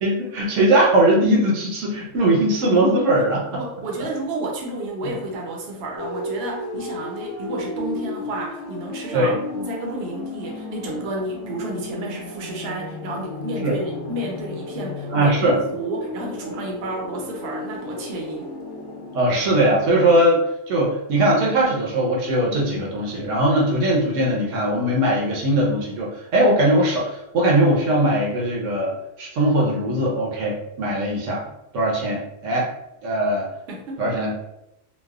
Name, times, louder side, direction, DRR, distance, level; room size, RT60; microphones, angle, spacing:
voice 1, 0.0-3.6 5.0-5.1 9.1-9.4 13.6-13.7 15.1-15.6 19.1-28.9 29.2-31.4 31.7-32.7 33.0-33.5 34.0-34.3, right 1 dB, 75° right, -3 dB, 1.0 m, -20 dB
voice 2, 3.5-18.5 33.7-34.0, right 1 dB, 60° right, -1 dB, 0.8 m, -31 dB
sound 1, 6.0-20.3, left 2 dB, 80° left, 1.0 m, -34 dB
3.2 x 2.1 x 2.3 m, 0.84 s
omnidirectional pair, 1.3 m